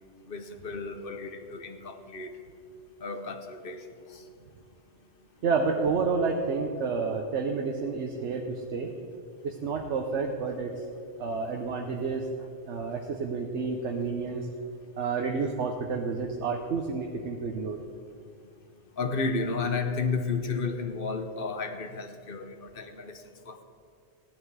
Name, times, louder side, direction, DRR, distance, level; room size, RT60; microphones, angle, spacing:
voice 1, 0.3-2.3 3.0-3.8 4.1-4.2 19.0-23.6, left 4 dB, 55° left, 7 dB, 1.1 m, -32 dB
voice 2, 5.4-8.9 9.4-10.7 11.2-12.2 12.7-14.5 15.0-17.8, right 4 dB, 85° right, 2 dB, 1.2 m, -30 dB
15.5 x 11.0 x 4.8 m, 2.4 s
omnidirectional pair, 1.2 m